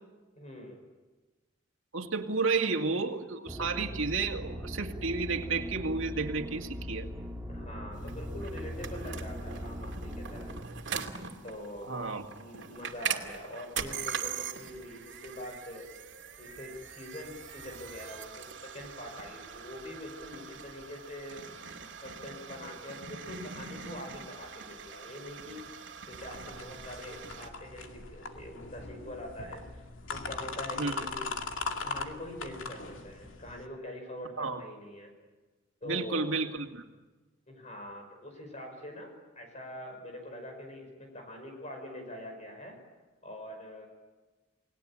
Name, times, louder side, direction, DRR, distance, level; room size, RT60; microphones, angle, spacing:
voice 1, 0.4-0.8 7.5-10.5 11.4-15.9 16.4-21.5 22.0-25.6 26.1-29.7 30.1-31.4 31.8-35.1 35.8-36.4 37.5-42.8 43.2-43.9, left 1 dB, 35° left, 3 dB, 5.8 m, -44 dB
voice 2, 1.9-7.1 11.8-12.3 30.8-31.1 34.4-34.6 35.8-36.8, right 4 dB, 80° right, 3 dB, 2.3 m, -31 dB
sound 1, 3.5-10.6, equal, 10° right, 2.2 m, -40 dB
sound 2, 8.0-27.5, right 6 dB, 65° right, 2.7 m, -42 dB
sound 3, 26.1-33.7, left 4 dB, 80° left, 2.4 m, -40 dB
30.0 x 20.0 x 8.8 m, 1.2 s
head